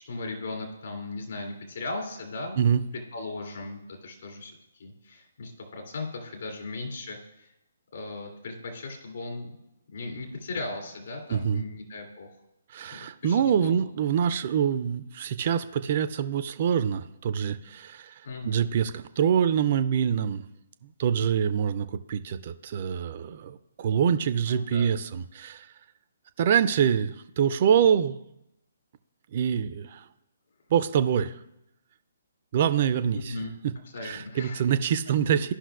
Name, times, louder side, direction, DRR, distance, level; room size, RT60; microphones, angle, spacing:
voice 1, 0.1-2.6 3.1-4.5 4.8-7.5 7.9-9.5 9.9-12.3 12.9-13.8 18.2-18.7 24.5-24.9 33.1-33.5 33.9-34.6, left 2 dB, 55° left, -1 dB, 2.5 m, -37 dB
voice 2, 11.3-11.6 12.7-20.4 21.0-25.7 26.4-28.2 29.3-30.1 30.7-31.4 32.5-33.4 33.6-33.7 34.0-35.5, right 8 dB, 40° right, 12 dB, 0.4 m, -25 dB
14.0 x 5.7 x 2.3 m, 0.83 s
figure-of-eight pair, 135°, 0 cm